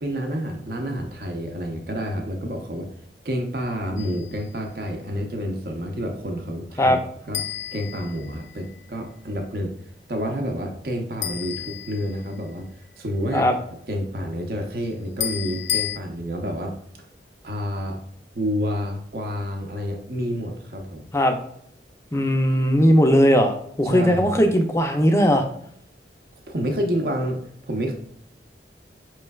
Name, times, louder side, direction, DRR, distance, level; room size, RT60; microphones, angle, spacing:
voice 1, 0.0-2.9 3.2-7.0 7.3-7.4 7.7-9.7 10.1-13.5 13.9-16.7 17.4-18.0 18.3-21.1 23.8-24.3 26.5-27.9, equal, 55° right, 2 dB, 0.6 m, -29 dB
sound 1, 4.0-4.4 7.3-8.7 11.2-12.5 15.2-16.0, left 11 dB, 80° left, 0.3 m, -31 dB
voice 2, 22.1-25.4, equal, 15° left, 5 dB, 0.4 m, -18 dB
5.4 x 3.1 x 2.3 m, 0.67 s
head